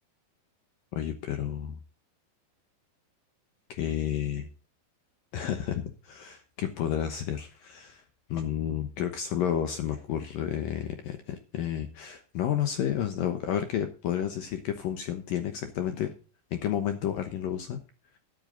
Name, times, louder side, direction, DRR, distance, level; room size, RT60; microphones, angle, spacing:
voice 1, 0.9-1.8 3.7-4.5 5.3-8.0 8.3-16.1 16.5-17.8, left 10 dB, 70° left, 7 dB, 2.2 m, -31 dB
13.0 x 10.5 x 3.9 m, 0.35 s
omnidirectional pair, 5.3 m